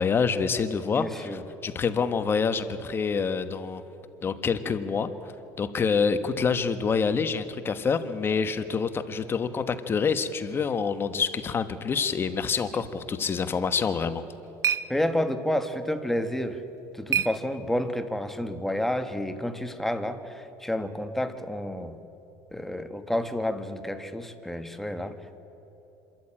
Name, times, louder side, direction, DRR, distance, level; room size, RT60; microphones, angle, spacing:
voice 1, 0.0-3.8 4.2-5.1 5.6-14.2, left 5 dB, 30° left, 11 dB, 1.3 m, -27 dB
voice 2, 0.9-1.4 14.9-16.6 16.9-22.0 22.5-25.1, left 1 dB, 5° left, 8 dB, 1.5 m, -30 dB
sound 1, 13.9-18.1, right 9 dB, 45° right, 0.8 m, -34 dB
26.5 x 13.5 x 8.8 m, 3.0 s
supercardioid pair, 110°, 7 cm